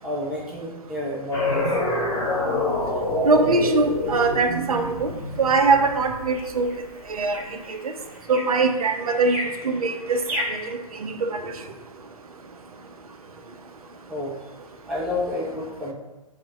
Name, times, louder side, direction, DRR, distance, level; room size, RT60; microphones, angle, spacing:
voice 1, 0.0-1.7 14.1-14.3 14.9-15.9, left 1 dB, 5° right, -6 dB, 0.5 m, -29 dB
sound 1, 1.3-6.6, left 1 dB, 15° left, 1.0 m, -26 dB
voice 2, 3.2-5.1 5.4-6.7 7.1-7.9 8.3-10.2 10.5-10.6 11.0-11.5, right 3 dB, 70° right, 5 dB, 0.5 m, -22 dB
sound 2, 3.6-10.7, equal, 55° right, 1.5 m, -37 dB
3.1 x 2.1 x 4.2 m, 1.1 s
figure-of-eight pair, 115°, 19 cm